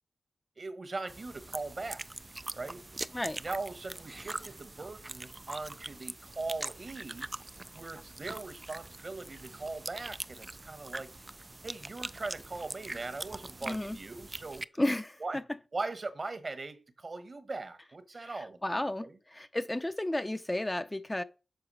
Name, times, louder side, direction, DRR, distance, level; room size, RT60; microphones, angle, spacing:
voice 1, 0.6-2.0 2.5-2.9 3.4-7.3 7.7-11.1 11.6-14.6 15.2-15.4 15.7-19.1, right 3 dB, 45° right, 1.2 m, -40 dB
sound 1, 1.1-14.6, right 2 dB, 25° right, 0.4 m, -43 dB
voice 2, 13.6-14.0 14.8-15.4 18.2-21.2, left 1 dB, 15° left, 0.6 m, -33 dB
6.8 x 4.7 x 6.1 m
cardioid pair, 70°, 0 cm